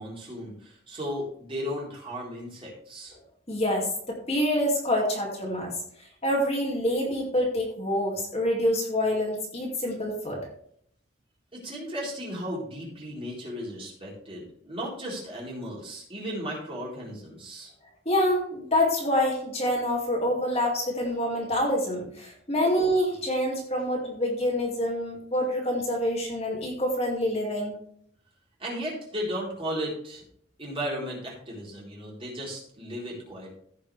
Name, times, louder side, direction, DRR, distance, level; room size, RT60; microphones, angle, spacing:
voice 1, 0.0-3.1 11.5-17.7 28.6-30.2 30.6-33.5, equal, 30° right, -4 dB, 4.1 m, -35 dB
voice 2, 3.5-5.7 6.2-10.4 18.1-27.7, left 1 dB, 30° left, -1 dB, 2.3 m, -26 dB
15.5 x 6.4 x 3.4 m, 0.66 s
head